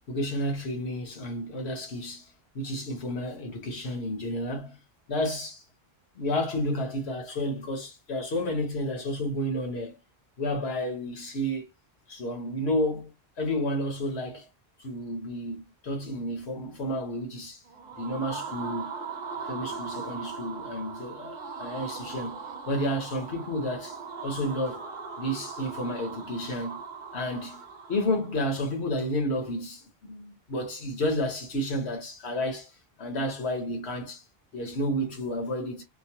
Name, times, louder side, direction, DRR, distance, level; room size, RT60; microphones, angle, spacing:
voice 1, 0.1-4.8 5.1-5.6 6.1-10.0 10.4-11.7 12.1-13.1 13.4-14.5 14.8-17.6 17.9-19.0 19.4-24.9 25.2-26.8 27.1-32.7 33.0-34.2 34.5-35.8, left 1 dB, 90° left, 1.3 m, -31 dB
sound 1, 17.6-28.5, right 5 dB, 55° right, 0.7 m, -39 dB
3.0 x 2.1 x 2.8 m
omnidirectional pair, 1.1 m